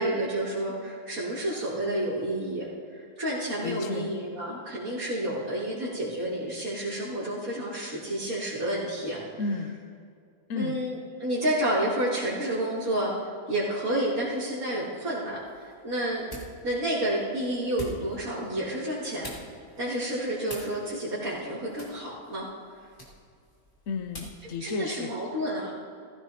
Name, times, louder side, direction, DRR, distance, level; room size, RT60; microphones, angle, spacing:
voice 1, 0.0-9.2 10.5-16.2 16.6-19.3 19.8-22.5 24.6-25.7, right 1 dB, 60° right, -10 dB, 3.1 m, -30 dB
voice 2, 3.6-4.1 9.4-9.8 10.5-10.8 23.9-25.1, left 4 dB, 60° left, 5 dB, 1.1 m, -32 dB
sound 1, 15.3-24.5, equal, 35° left, 2.5 m, -47 dB
17.5 x 15.0 x 2.8 m, 2.2 s
omnidirectional pair, 1.6 m